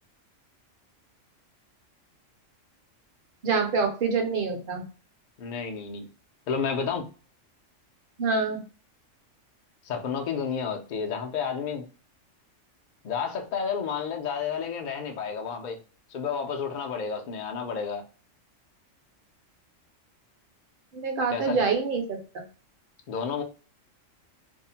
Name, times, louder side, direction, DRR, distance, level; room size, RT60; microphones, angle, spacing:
voice 1, 3.4-4.8 8.2-8.6 20.9-22.2, right 4 dB, 50° right, 0.7 m, -26 dB
voice 2, 5.4-6.1 6.5-7.1 9.8-11.9 13.0-15.8 16.1-18.0 21.3-21.6 23.1-23.4, left 6 dB, 65° left, 0.4 m, -31 dB
2.6 x 2.0 x 2.7 m
omnidirectional pair, 1.3 m